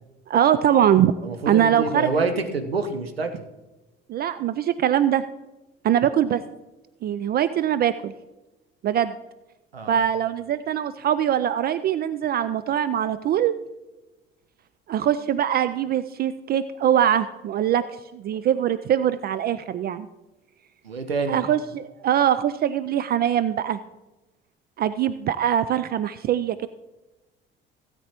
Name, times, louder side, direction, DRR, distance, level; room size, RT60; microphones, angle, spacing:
voice 1, 0.3-1.1 1.5-2.1 4.1-5.2 5.8-6.4 7.0-8.1 8.8-9.1 9.9-13.6 14.9-17.8 18.1-20.1 21.3-23.8 24.8-26.7, right 10 dB, 35° right, 13 dB, 0.4 m, -22 dB
voice 2, 1.2-3.5 9.7-10.0 20.8-21.4, right 3 dB, 85° right, 7 dB, 0.9 m, -27 dB
17.0 x 8.2 x 3.0 m, 1.1 s
figure-of-eight pair, 55°, 29 cm